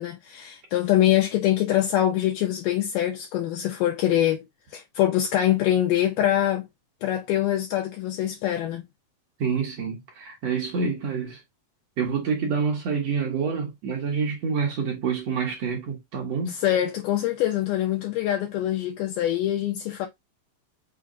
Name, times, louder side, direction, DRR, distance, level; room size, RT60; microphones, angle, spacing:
voice 1, 0.0-4.5 4.7-6.7 7.0-8.9 16.5-20.1, left 12 dB, 80° left, 2.0 m, -24 dB
voice 2, 9.4-11.4 12.0-16.5, right 5 dB, 70° right, 1.5 m, -27 dB
5.7 x 2.1 x 3.6 m
omnidirectional pair, 4.3 m